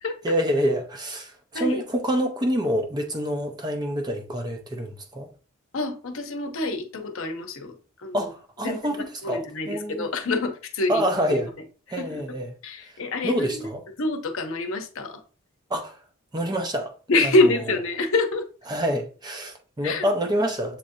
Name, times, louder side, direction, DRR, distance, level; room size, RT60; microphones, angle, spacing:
voice 1, 0.2-5.3 8.1-10.1 10.9-11.5 11.9-12.5 13.2-13.8 15.7-16.0 16.3-16.9 18.7-20.8, equal, 20° right, 0.6 m, -27 dB
voice 2, 5.7-8.3 8.6-11.0 11.3-11.4 11.9-12.4 12.6-13.7 14.0-15.2 17.1-18.4 19.8-20.1, left 2 dB, 65° left, 0.8 m, -26 dB
7.2 x 2.6 x 2.7 m
head